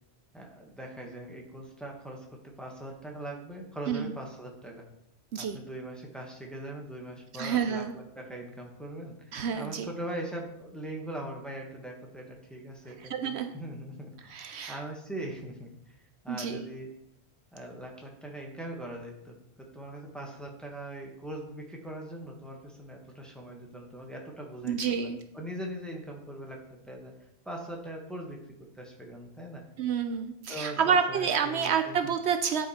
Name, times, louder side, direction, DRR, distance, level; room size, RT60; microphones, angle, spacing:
voice 1, 0.3-4.9 5.4-16.0 16.2-16.9 17.5-26.6 26.8-27.1 27.4-28.4 28.7-29.6 30.5-32.1, right 1 dB, ahead, 0 dB, 1.3 m, -41 dB
voice 2, 3.9-4.2 5.3-5.6 7.4-8.0 9.3-9.9 13.0-13.5 14.3-14.8 16.3-16.6 24.6-25.2 29.8-32.7, right 7 dB, 70° right, 7 dB, 0.8 m, -29 dB
10.5 x 5.0 x 4.3 m, 0.80 s
omnidirectional pair, 1.2 m